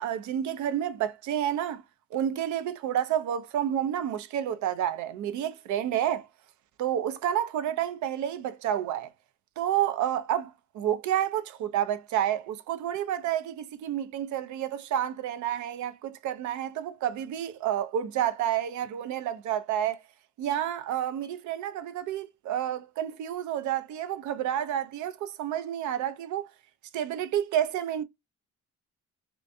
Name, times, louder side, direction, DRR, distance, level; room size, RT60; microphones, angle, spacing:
voice 1, 0.0-1.8 2.1-6.3 6.8-9.1 9.6-20.0 20.4-26.5 26.9-28.0, right 10 dB, 75° right, 0.5 m, -30 dB
2.5 x 2.2 x 2.5 m
cardioid pair, 90°, 30 cm